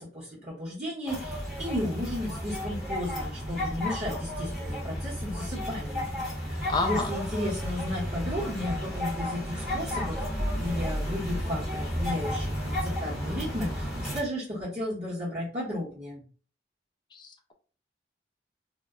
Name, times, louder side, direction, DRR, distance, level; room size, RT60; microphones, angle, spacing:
voice 1, 0.0-6.1 6.4-16.2, left 1 dB, 35° right, -8 dB, 0.9 m, -34 dB
sound 1, 1.1-14.2, equal, ahead, 0.7 m, -32 dB
voice 2, 6.7-7.1 17.1-17.5, left 3 dB, 25° left, 5 dB, 0.3 m, -30 dB
2.2 x 2.0 x 3.5 m, 0.41 s
head